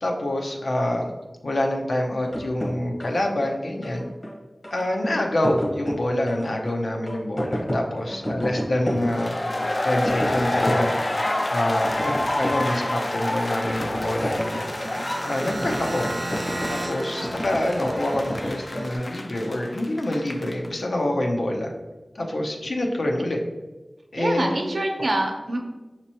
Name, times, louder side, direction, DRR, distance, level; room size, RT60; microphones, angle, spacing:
voice 1, 0.0-1.1 1.4-4.1 4.7-9.3 9.8-11.0 11.5-14.8 15.2-16.1 16.7-21.7 22.1-23.4 24.1-24.5, left 1 dB, 80° left, 1 dB, 0.6 m, -26 dB
sound 1, 2.2-19.0, equal, 55° left, 1.0 m, -32 dB
voice 2, 8.1-8.4 17.2-17.5 24.2-25.6, right 1 dB, 80° right, 1 dB, 0.7 m, -27 dB
sound 2, 9.0-20.7, left 1 dB, 35° left, 0.3 m, -29 dB
sound 3, 14.0-19.0, right 1 dB, 45° right, 0.3 m, -35 dB
6.0 x 2.9 x 2.8 m, 1.2 s
wide cardioid pair, 65°, 0 cm